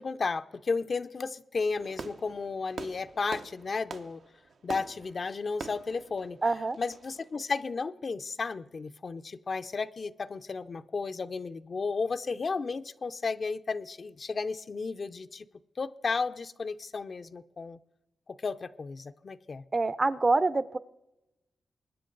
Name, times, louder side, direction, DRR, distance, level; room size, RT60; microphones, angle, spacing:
voice 1, 0.0-4.2 4.6-6.4 6.8-15.4 15.8-17.8 18.3-19.6, left 4 dB, 50° left, 10 dB, 0.6 m, -33 dB
Fireworks, 1.7-7.3, right 4 dB, 70° right, 0.9 m, -45 dB
voice 2, 6.4-6.8 19.7-20.8, right 3 dB, 35° right, 15 dB, 0.7 m, -26 dB
23.0 x 10.0 x 3.9 m, 0.95 s
cardioid pair, 65°, 0 cm